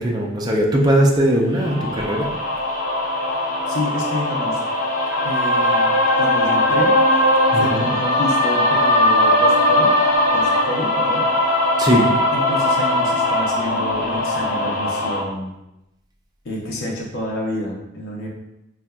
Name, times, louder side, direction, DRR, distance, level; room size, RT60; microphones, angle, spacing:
voice 1, 0.0-2.3 7.5-7.9 11.8-12.2, right 1 dB, 20° right, -1 dB, 0.4 m, -19 dB
sound 1, 1.6-15.2, left 1 dB, 45° left, 0.7 m, -19 dB
voice 2, 3.7-4.6 5.2-7.0 7.5-10.0 10.3-11.3 12.3-15.5 16.4-18.3, left 1 dB, 85° left, -2 dB, 0.7 m, -28 dB
3.9 x 2.4 x 2.2 m, 0.89 s
head